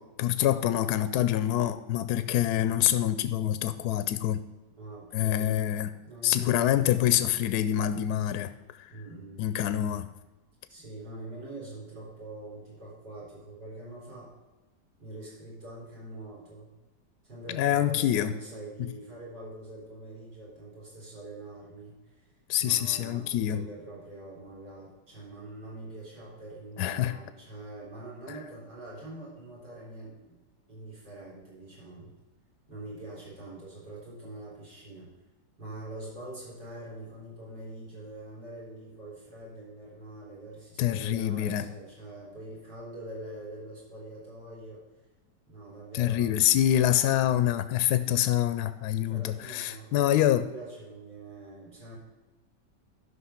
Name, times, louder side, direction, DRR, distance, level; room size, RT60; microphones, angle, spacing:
voice 1, 0.2-4.4 5.1-5.9 6.2-8.5 8.8-8.9 9.4-10.1 17.5-18.3 22.5-23.7 26.8-27.1 40.8-41.7 45.9-50.4, left 12 dB, 75° left, 12 dB, 1.0 m, -26 dB
voice 2, 4.8-5.6 6.0-7.1 8.9-9.5 10.7-14.3 15.0-16.7 17.2-22.3 22.6-30.4 30.7-32.1 32.7-35.1 35.6-44.9 45.5-46.9 48.1-48.4 49.0-52.0, right 2 dB, 75° right, -6 dB, 4.7 m, -44 dB
11.5 x 5.6 x 5.7 m, 1.2 s
omnidirectional pair, 1.9 m